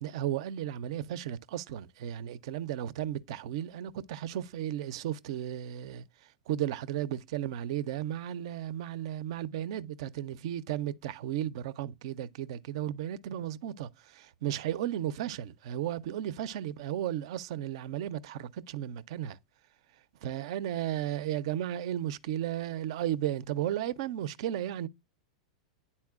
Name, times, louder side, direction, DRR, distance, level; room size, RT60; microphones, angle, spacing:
voice 1, 0.0-6.0 6.5-19.4 20.2-24.9, right 11 dB, 65° right, 0.4 m, -34 dB
9.7 x 4.2 x 2.3 m
hypercardioid pair, 105°, 3 cm